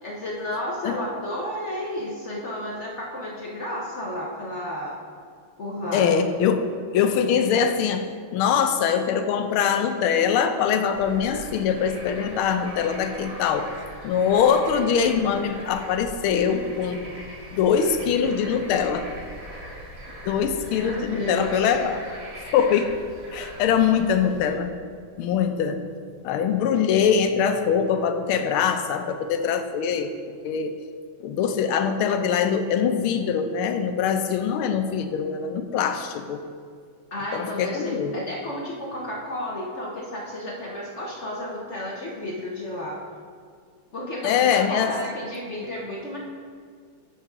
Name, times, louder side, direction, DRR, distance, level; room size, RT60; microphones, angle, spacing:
voice 1, 0.0-5.0 5.6-6.1 20.7-21.7 37.1-43.0 43.9-46.2, left 1 dB, 55° left, -2 dB, 0.8 m, -32 dB
voice 2, 5.9-6.7 6.9-8.1 8.3-13.7 14.0-17.0 17.5-19.1 20.3-22.0 22.4-23.0 23.3-24.7 25.2-25.8 26.2-30.1 30.4-30.8 31.2-36.4 37.3-38.1 44.2-44.9, left 7 dB, 90° left, 8 dB, 1.5 m, -23 dB
Bird / Frog, 10.9-24.6, equal, 40° right, 2.2 m, -41 dB
8.6 x 6.6 x 3.6 m, 2.1 s
omnidirectional pair, 2.3 m